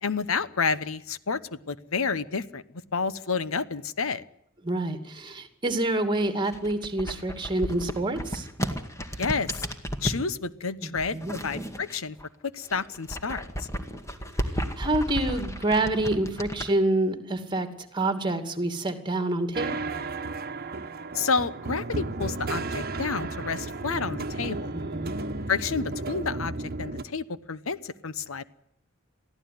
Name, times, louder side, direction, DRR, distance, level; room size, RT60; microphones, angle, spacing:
voice 1, 0.0-2.6 2.9-4.2 9.2-9.7 10.0-12.2 12.4-13.7 21.1-24.7 25.5-28.4, left 5 dB, 85° left, 15 dB, 1.1 m, -30 dB
voice 2, 4.6-8.5 10.8-11.3 14.8-17.7 17.9-19.9 24.7-25.1, right 2 dB, 25° right, 8 dB, 2.6 m, -27 dB
sound 1, 6.4-10.2 10.9-12.3 12.6-16.7, equal, 15° left, 2.1 m, -33 dB
sound 2, 19.5-27.0, right 3 dB, 50° right, 1.3 m, -33 dB
23.0 x 15.5 x 9.6 m, 0.74 s
head